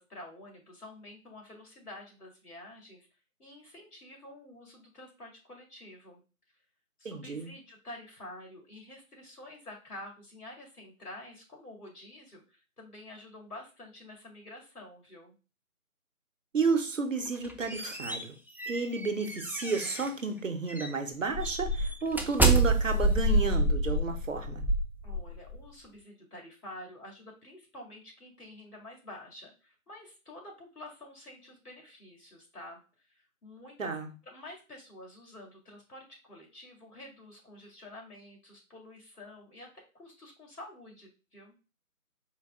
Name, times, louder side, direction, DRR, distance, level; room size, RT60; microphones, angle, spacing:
voice 1, 0.0-3.1 3.4-6.2 7.0-15.4 25.0-33.9 34.3-41.5, left 1 dB, 85° left, 2.3 m, -49 dB
voice 2, 7.0-7.5 16.5-18.4 18.7-24.7 33.8-34.1, right 4 dB, 60° right, 0.7 m, -32 dB
sound 1, 17.3-20.2 20.7-20.9 21.3-25.6, right 1 dB, 5° right, 0.3 m, -28 dB
4.5 x 2.1 x 3.5 m
figure-of-eight pair, 180°, 44 cm